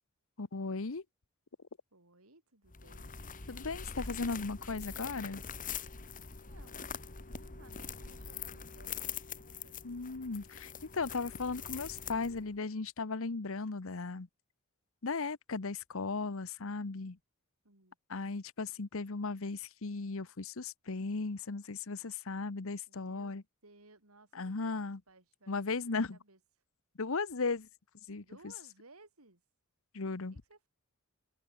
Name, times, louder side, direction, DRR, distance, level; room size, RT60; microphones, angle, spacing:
voice 1, 0.4-1.0 3.5-5.4 9.8-14.3 15.0-17.2 18.1-23.4 24.3-25.0 25.5-26.2 27.0-27.7 28.1-28.2 29.9-30.3, left 4 dB, 70° left, 1.0 m, -36 dB
voice 2, 1.9-3.1 6.4-6.9 7.2-9.7 17.6-18.0 22.9-26.4 28.1-29.4 30.3-30.7, right 2 dB, 90° right, 5.3 m, -61 dB
sound 1, 2.7-12.6, left 6 dB, 40° left, 1.7 m, -44 dB
head